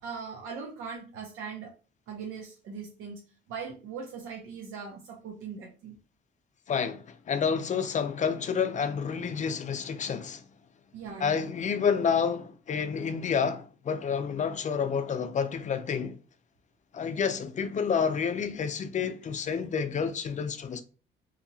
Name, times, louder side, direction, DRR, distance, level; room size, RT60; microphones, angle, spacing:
voice 1, 0.0-1.7 2.1-3.2 3.5-5.9 10.9-11.4, right 5 dB, 90° right, 0.6 m, -40 dB
voice 2, 6.7-10.4 11.2-16.2 16.9-20.8, left 6 dB, 40° left, 0.4 m, -29 dB
2.8 x 2.7 x 2.7 m
cardioid pair, 90°, 20 cm